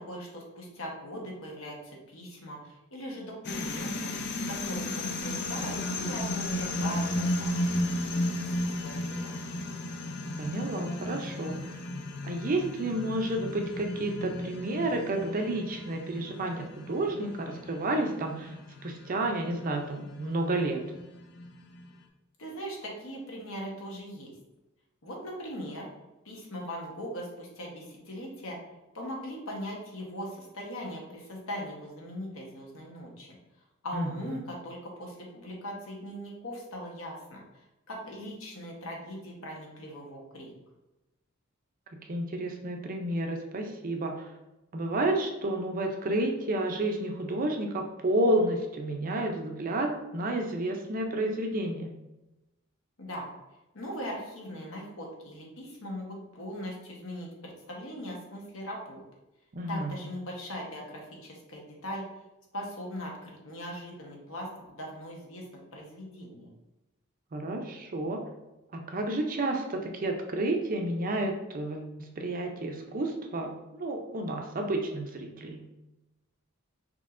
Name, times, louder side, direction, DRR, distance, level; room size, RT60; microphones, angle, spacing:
voice 1, 0.1-4.1 4.5-4.9 5.1-7.5 7.9-8.1 8.4-9.3 22.4-24.3 25.0-25.9 26.2-28.6 28.9-33.3 33.8-40.5 53.0-53.3 53.7-59.0 59.7-62.0 62.5-66.5, equal, 70° left, -1 dB, 1.1 m, -40 dB
sound 1, 3.4-21.9, left 1 dB, 55° left, 0.5 m, -34 dB
voice 2, 10.4-11.6 12.2-18.5 18.8-20.8 33.9-34.1 41.9-44.3 44.7-51.9 59.5-60.0 67.3-68.2 68.7-75.7, right 1 dB, 40° right, 3 dB, 0.6 m, -31 dB
5.3 x 3.0 x 2.5 m, 0.97 s
head